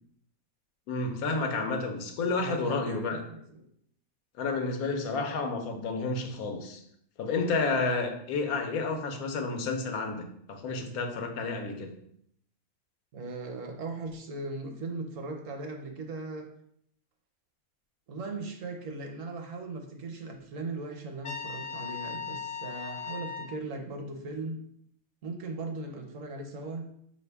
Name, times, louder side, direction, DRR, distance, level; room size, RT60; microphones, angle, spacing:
voice 1, 0.9-3.2 4.4-6.8 7.2-11.9, left 3 dB, 90° left, 4 dB, 1.2 m, -30 dB
voice 2, 2.2-3.6 13.1-16.5 18.1-24.6 25.2-26.9, right 3 dB, 65° right, 4 dB, 1.0 m, -38 dB
Trumpet, 21.2-23.6, left 6 dB, 55° left, 0.6 m, -38 dB
4.8 x 2.8 x 3.4 m, 0.70 s
omnidirectional pair, 1.5 m